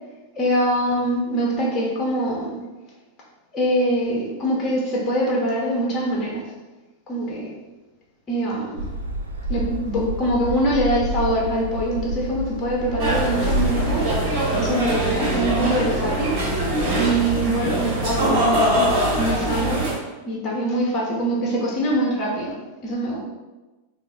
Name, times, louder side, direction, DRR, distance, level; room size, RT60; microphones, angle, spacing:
voice 1, 0.3-2.6 3.5-6.4 7.1-7.5 8.3-8.8 9.5-14.1 14.6-16.4 17.0-19.9 20.3-23.2, right 1 dB, 25° left, -3 dB, 0.8 m, -24 dB
sound 1, 8.8-14.2, right 1 dB, 75° right, 0.4 m, -28 dB
sound 2, 13.0-19.9, right 1 dB, 45° right, 1.2 m, -22 dB
3.9 x 2.0 x 3.5 m, 1.1 s
figure-of-eight pair, 90°, 0 cm